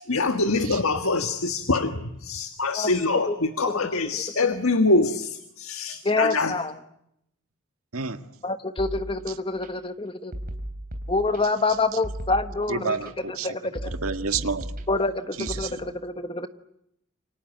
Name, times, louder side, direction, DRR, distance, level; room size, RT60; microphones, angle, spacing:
voice 1, 0.0-6.6, left 3 dB, 80° left, 8 dB, 1.6 m, -24 dB
voice 2, 6.0-6.7 8.4-10.3 11.1-13.0 13.3-13.9 14.9-16.5, left 3 dB, 25° left, 10 dB, 1.2 m, -26 dB
sound 1, 8.8-9.7 10.3-11.7 12.0-13.1 13.8-15.6, right 1 dB, 40° right, 3.5 m, -36 dB
voice 3, 12.7-13.6 13.8-14.7 15.4-15.9, right 5 dB, 80° right, 8 dB, 1.7 m, -29 dB
28.5 x 25.5 x 8.1 m, 0.79 s
head